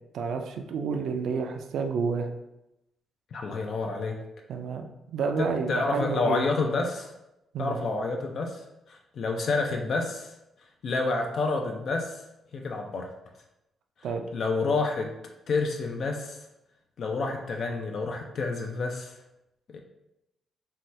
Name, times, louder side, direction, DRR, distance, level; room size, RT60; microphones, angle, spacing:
voice 1, 0.1-2.3 4.5-6.4 7.5-7.8 14.0-14.2, right 5 dB, 75° right, 5 dB, 0.3 m, -30 dB
voice 2, 3.3-4.2 5.4-7.1 7.6-8.6 8.9-10.3 10.8-12.2 12.5-13.1 14.3-15.1 15.5-16.4 17.0-19.2 19.7-19.8, left 3 dB, 60° left, 2 dB, 0.3 m, -29 dB
2.7 x 2.2 x 3.1 m, 0.89 s
cardioid pair, 85°, 0 cm